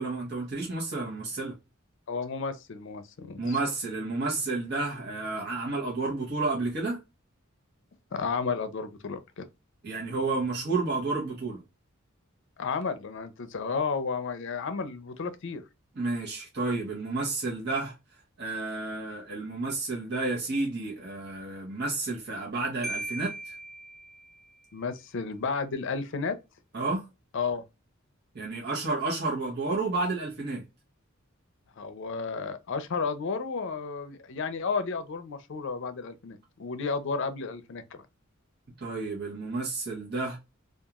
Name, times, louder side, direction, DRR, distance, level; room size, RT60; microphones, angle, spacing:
voice 1, 0.0-1.5 3.4-7.0 9.8-11.6 16.0-17.9 18.4-23.6 26.7-27.0 28.3-30.6 38.8-40.4, right 3 dB, 55° right, 0.8 m, -31 dB
voice 2, 2.1-3.6 8.1-9.5 12.6-15.6 24.7-26.4 27.3-27.6 31.8-38.0, left 5 dB, 65° left, 0.5 m, -32 dB
Marimba xylophone, 22.8-24.6, right 2 dB, ahead, 0.4 m, -38 dB
2.9 x 2.3 x 2.3 m
head